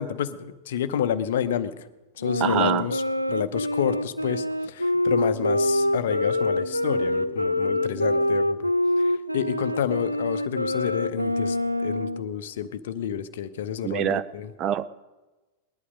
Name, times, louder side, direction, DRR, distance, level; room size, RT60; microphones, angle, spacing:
voice 1, 0.0-1.7 2.2-3.0 3.3-8.7 9.0-11.6 11.8-14.5, left 9 dB, 60° left, 13 dB, 0.7 m, -29 dB
Wind instrument woodwind instrument, 2.2-12.3, left 1 dB, 90° left, 0.4 m, -25 dB
voice 2, 2.4-2.9 13.8-14.2 14.6-14.9, right 10 dB, 35° right, 14 dB, 0.5 m, -25 dB
sound 1, 5.1-8.4, right 3 dB, 60° right, 1.6 m, -38 dB
19.0 x 11.5 x 5.2 m, 1.2 s
figure-of-eight pair, 90°, 0 cm